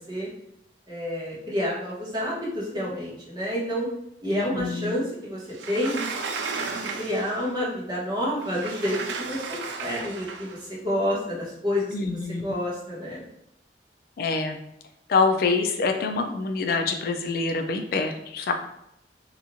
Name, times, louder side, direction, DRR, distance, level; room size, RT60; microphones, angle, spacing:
voice 1, 0.9-3.9 4.2-5.4 5.7-6.0 7.0-13.2, equal, 25° right, -7 dB, 1.0 m, -29 dB
voice 2, 4.3-5.0 11.9-12.6 14.2-14.6 15.1-18.5, left 4 dB, 55° left, 5 dB, 0.3 m, -26 dB
Sliding door, 5.5-7.5 8.4-10.6, right 4 dB, 85° right, 0.4 m, -34 dB
2.9 x 2.4 x 2.6 m, 0.82 s
head